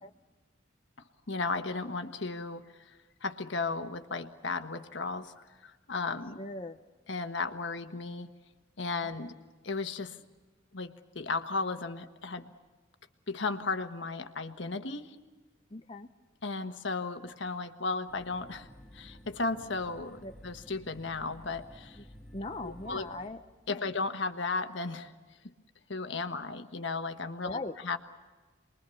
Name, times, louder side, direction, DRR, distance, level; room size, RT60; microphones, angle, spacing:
voice 1, 1.3-2.9 3.2-5.3 5.6-6.4 7.1-8.3 8.8-9.3 9.6-10.2 10.7-12.5 13.3-15.2 16.4-18.7 18.9-22.0 22.6-23.1 23.7-25.1 25.4-25.5 25.9-27.6 27.8-28.0, left 3 dB, 65° left, 7 dB, 1.4 m, -35 dB
voice 2, 6.4-6.8 15.7-16.1 20.2-20.3 22.3-23.4 23.7-23.8 27.4-27.8, left 2 dB, 25° left, 5 dB, 0.7 m, -39 dB
sound 1, 18.1-23.3, equal, ahead, 1.9 m, -52 dB
28.5 x 22.0 x 7.1 m, 1.3 s
head